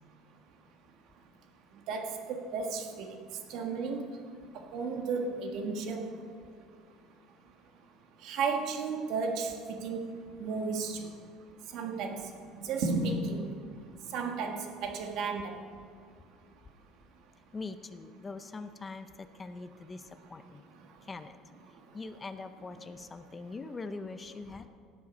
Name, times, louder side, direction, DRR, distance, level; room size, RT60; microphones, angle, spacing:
voice 1, 1.9-3.1 3.5-4.0 4.7-6.1 8.2-9.5 9.8-10.1 10.4-11.1 11.7-12.2 12.5-13.4 14.1-15.5, right 4 dB, 55° right, 3 dB, 1.6 m, -33 dB
voice 2, 17.5-20.6 21.0-21.4 21.9-24.7, left 3 dB, 15° left, 9 dB, 0.6 m, -42 dB
17.5 x 7.6 x 5.4 m, 2.2 s
cardioid pair, 160°, 0 cm